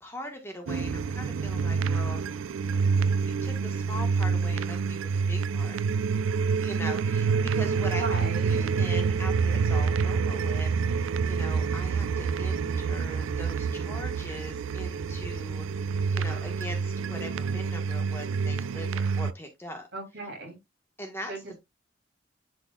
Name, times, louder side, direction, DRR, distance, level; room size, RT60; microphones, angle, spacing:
voice 1, 0.0-2.4 3.3-5.8 6.6-8.2 8.5-19.9 21.0-21.3, left 1 dB, 10° left, 1.4 m, -41 dB
sound 1, 0.7-19.3, right 5 dB, 90° right, 0.4 m, -27 dB
voice 2, 7.7-8.8 19.9-20.6 21.3-21.6, right 3 dB, 60° right, 3.1 m, -37 dB
11.0 x 4.0 x 2.4 m
head